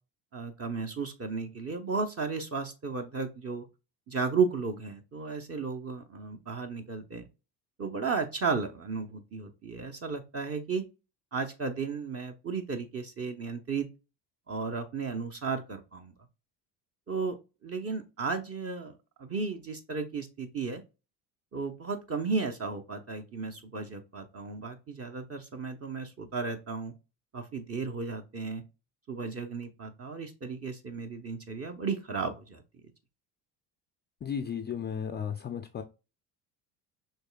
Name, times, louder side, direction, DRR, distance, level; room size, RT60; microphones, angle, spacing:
voice 1, 0.3-3.7 4.1-7.3 7.8-10.8 11.3-13.9 14.5-16.1 17.1-17.4 17.6-18.9 19.2-20.8 21.5-26.9 27.3-28.6 29.1-32.6, right 4 dB, 30° right, 0.7 m, -34 dB
voice 2, 34.2-35.8, left 7 dB, 25° left, 0.4 m, -34 dB
5.4 x 3.2 x 2.2 m
hypercardioid pair, 65°, 49 cm